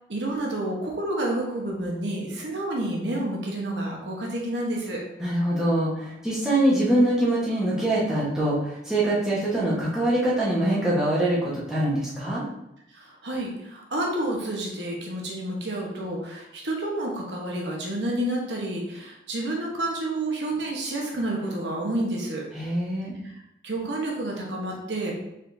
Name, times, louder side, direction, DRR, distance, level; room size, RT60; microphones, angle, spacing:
voice 1, 0.1-5.1 12.9-22.5 23.2-23.3 23.6-25.2, right 1 dB, 80° right, -1 dB, 1.0 m, -29 dB
voice 2, 5.2-12.4 22.5-23.1, right 1 dB, 5° right, -8 dB, 1.2 m, -24 dB
5.0 x 3.7 x 2.7 m, 0.84 s
head